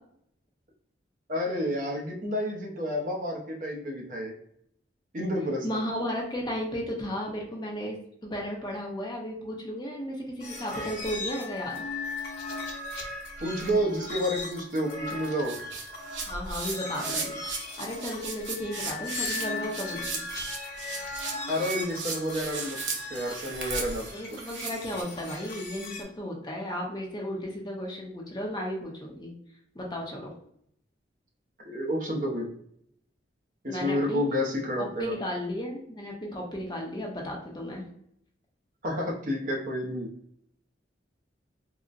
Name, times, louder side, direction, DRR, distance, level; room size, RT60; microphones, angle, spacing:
voice 1, 1.3-4.3 5.1-5.6 13.4-15.6 21.5-22.8 23.1-24.0 31.6-32.5 33.6-35.1 38.8-40.1, equal, 45° right, -1 dB, 0.7 m, -30 dB
voice 2, 5.6-11.8 16.3-17.4 17.8-20.2 24.1-29.3 29.7-30.3 33.7-34.2 34.8-37.9, equal, 25° left, -1 dB, 0.6 m, -34 dB
sound 1, 10.4-26.0, left 2 dB, 60° left, 1.1 m, -38 dB
sound 2, 15.5-25.0, right 4 dB, 90° right, 0.7 m, -36 dB
3.8 x 2.1 x 2.5 m, 0.69 s
head